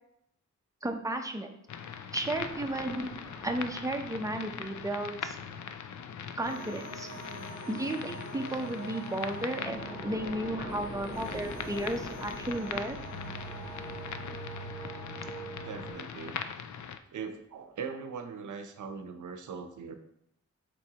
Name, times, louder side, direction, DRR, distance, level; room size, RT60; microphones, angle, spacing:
voice 1, 0.8-1.5 2.1-3.1 3.4-5.4 6.4-7.1 7.7-13.0, right 1 dB, 10° right, 4 dB, 0.6 m, -34 dB
sound 1, 1.7-17.0, left 7 dB, 75° left, 0.5 m, -41 dB
sound 2, 2.3-6.2 9.2-16.4, equal, 10° left, 1.3 m, -48 dB
sound 3, 6.4-15.9, right 3 dB, 35° left, 2.2 m, -44 dB
voice 2, 15.6-16.4 17.1-19.9, right 5 dB, 85° right, 8 dB, 0.7 m, -40 dB
7.4 x 4.5 x 2.9 m, 0.78 s
wide cardioid pair, 120°, 30 cm